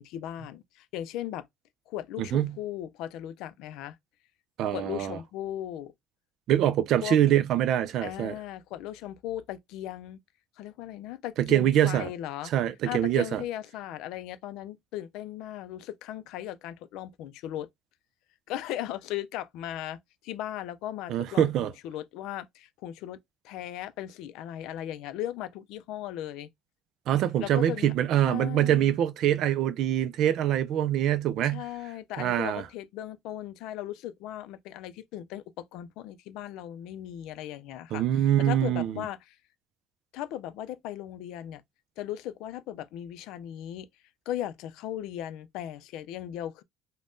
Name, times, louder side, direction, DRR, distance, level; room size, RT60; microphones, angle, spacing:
voice 1, 0.0-1.5 1.9-4.0 4.7-5.9 7.0-7.2 8.0-10.2 10.6-12.5 12.8-17.7 18.5-23.2 23.4-26.5 27.4-27.9 28.2-29.0 31.5-39.4 40.1-41.6 42.0-43.9 44.3-46.6, left 12 dB, 80° left, 0.3 m, -37 dB
voice 2, 4.6-5.2 6.5-8.3 11.4-12.1 12.5-13.4 21.1-21.7 27.1-31.6 32.2-32.6 37.9-39.0, right 11 dB, 60° right, 0.3 m, -24 dB
3.4 x 2.1 x 2.6 m
cardioid pair, 140°, 0 cm